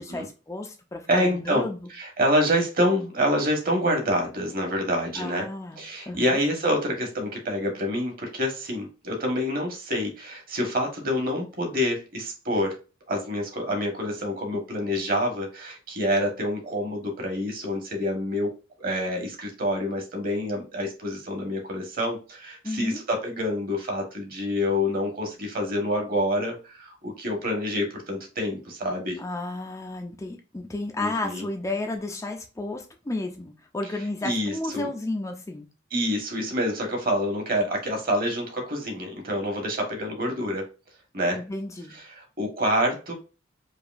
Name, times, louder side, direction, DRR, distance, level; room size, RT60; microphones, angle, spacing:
voice 1, 0.0-1.9 5.1-6.4 22.6-23.0 29.2-35.7 41.3-41.9, left 2 dB, 15° left, 3 dB, 0.4 m, -32 dB
voice 2, 1.1-1.6 1.9-5.5 5.8-12.8 13.1-18.5 18.8-29.2 31.0-31.4 34.2-34.9 35.9-40.6 41.1-41.4 42.2-43.1, equal, 45° right, 2 dB, 1.3 m, -27 dB
4.8 x 2.6 x 2.5 m, 0.32 s
head